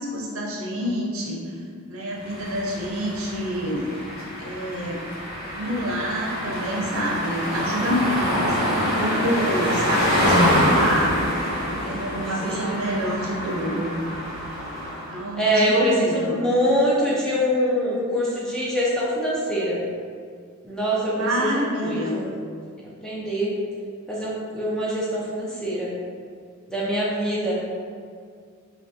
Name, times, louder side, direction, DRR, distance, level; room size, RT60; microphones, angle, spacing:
voice 1, 0.0-1.6 1.9-3.9 4.4-5.0 5.5-11.3 11.8-13.9 15.1-16.3 21.1-22.2, equal, 75° right, -3 dB, 0.7 m, -27 dB
sound 1, 2.2-15.2, equal, 45° left, 1.1 m, -25 dB
voice 2, 12.4-12.8 15.3-19.8 20.6-22.3 22.6-22.7 23.0-23.5 24.1-25.9 26.7-27.5, equal, 5° left, -7 dB, 0.5 m, -24 dB
3.3 x 2.9 x 2.7 m, 2.1 s
head